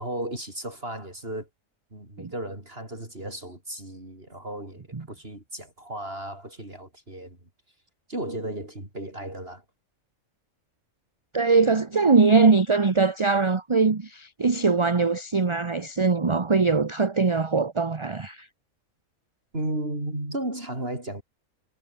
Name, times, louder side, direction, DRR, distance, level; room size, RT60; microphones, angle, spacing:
voice 1, 0.0-1.5 1.9-7.5 8.1-9.6 19.5-21.2, right 1 dB, 45° right, 6.6 m, -34 dB
voice 2, 11.3-18.5, right 4 dB, 25° right, 0.9 m, -22 dB
omnidirectional pair, 1.4 m